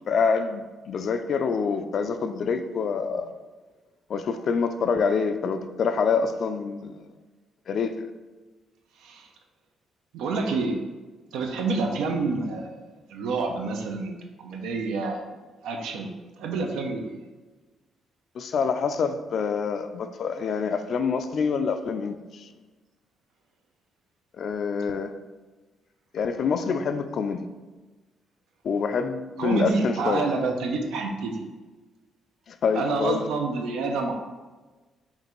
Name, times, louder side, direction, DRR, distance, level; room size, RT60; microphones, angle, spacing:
voice 1, 0.1-3.3 4.1-7.0 7.7-7.9 18.3-22.5 24.4-25.1 26.1-27.5 28.6-30.3 32.5-33.3, left 5 dB, 60° left, 9 dB, 0.3 m, -26 dB
voice 2, 10.1-10.8 11.3-14.2 14.4-15.3 15.6-17.2 29.4-31.5 32.7-34.1, right 3 dB, 90° right, 3 dB, 0.5 m, -28 dB
5.2 x 2.5 x 3.0 m, 1.3 s
cardioid pair, 90°, 0 cm